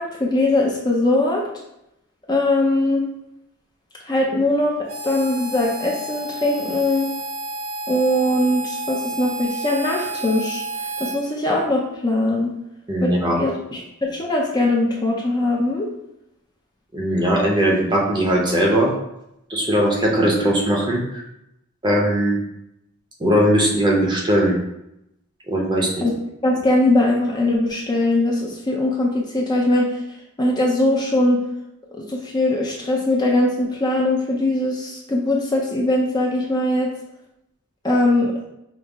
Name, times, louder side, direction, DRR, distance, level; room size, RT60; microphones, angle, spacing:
voice 1, 0.0-1.4 2.3-3.0 4.0-4.8 5.0-7.1 7.9-10.6 11.0-12.5 13.0-15.9 26.0-26.1 26.4-30.0 30.4-31.4 31.9-36.9 37.8-38.3, left 1 dB, 20° left, -2 dB, 0.5 m, -21 dB
Harmonica, 4.9-11.2, right 1 dB, 65° right, 0.6 m, -30 dB
voice 2, 12.9-13.4 16.9-18.9 19.5-21.2 21.8-22.4 23.2-24.6 25.5-25.9, equal, 20° right, -2 dB, 0.7 m, -19 dB
5.3 x 2.0 x 3.5 m, 0.84 s
head